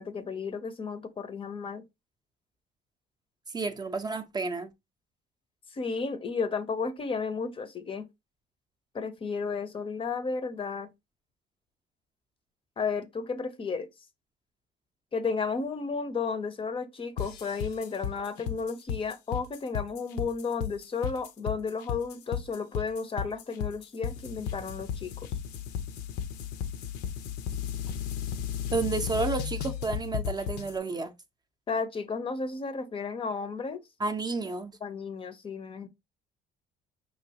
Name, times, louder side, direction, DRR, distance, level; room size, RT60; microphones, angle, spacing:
voice 1, 0.0-1.9 5.7-8.1 8.9-10.9 12.8-13.9 15.1-25.3 31.7-33.8 34.8-35.9, left 5 dB, 30° left, 0.6 m, -33 dB
voice 2, 3.5-4.7 28.7-31.1 34.0-34.8, right 3 dB, 25° right, 0.5 m, -31 dB
sound 1, 17.2-30.7, left 8 dB, 80° left, 0.6 m, -34 dB
5.2 x 3.0 x 2.8 m
cardioid pair, 110°, 17 cm